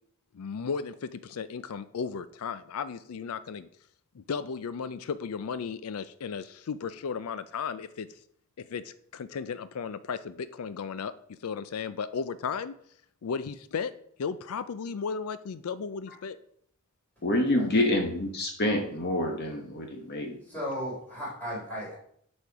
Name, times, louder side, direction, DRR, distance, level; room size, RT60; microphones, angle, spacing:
voice 1, 0.3-3.7 4.1-8.1 8.6-11.1 11.4-12.7 13.2-13.9 14.2-16.4, left 6 dB, 80° left, 13 dB, 0.4 m, -35 dB
voice 2, 17.2-20.4, left 1 dB, 50° left, 2 dB, 1.1 m, -27 dB
voice 3, 20.5-22.0, equal, 5° left, -6 dB, 3.6 m, -35 dB
11.5 x 4.4 x 4.7 m, 0.66 s
head